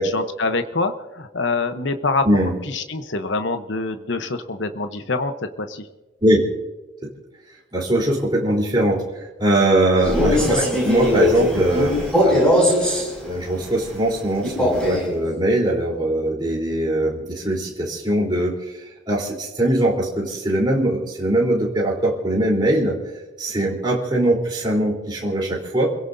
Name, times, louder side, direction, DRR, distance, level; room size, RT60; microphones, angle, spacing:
voice 1, 0.1-2.2 2.7-5.9, left 3 dB, 65° left, 8 dB, 1.0 m, -25 dB
voice 2, 7.7-12.0 12.2-12.6 13.2-23.0 23.4-25.9, right 1 dB, 20° right, -4 dB, 3.7 m, -21 dB
Male speech man speaking, 9.9-13.1 14.4-15.1, left 1 dB, 5° left, 7.0 m, -19 dB
29.0 x 17.0 x 2.7 m, 1.1 s
head